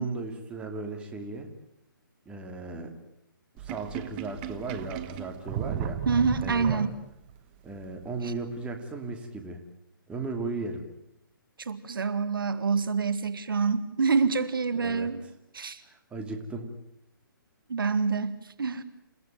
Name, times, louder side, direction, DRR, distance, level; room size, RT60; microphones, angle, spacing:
voice 1, 0.0-1.5 2.3-2.9 3.5-6.0 6.4-6.8 7.6-9.6 10.1-10.8 14.8-15.1 15.8-16.7, right 3 dB, 10° right, 3 dB, 2.8 m, -36 dB
Sink (filling or washing), 3.6-7.3, right 10 dB, 25° right, 1.4 m, -34 dB
voice 2, 6.1-6.9 8.2-8.3 11.6-15.2 15.5-15.8 17.7-18.8, right 5 dB, 75° right, 13 dB, 1.9 m, -27 dB
28.5 x 16.5 x 9.2 m, 0.80 s
hypercardioid pair, 150°, 12 cm